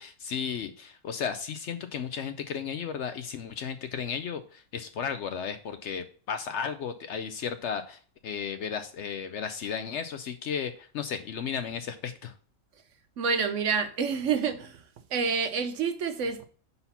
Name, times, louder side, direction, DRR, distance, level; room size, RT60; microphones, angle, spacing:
voice 1, 0.0-12.3, left 7 dB, 65° left, 0.8 m, -34 dB
voice 2, 13.2-14.8 15.1-16.5, right 5 dB, 65° right, 0.9 m, -28 dB
5.6 x 4.1 x 5.7 m
omnidirectional pair, 1.5 m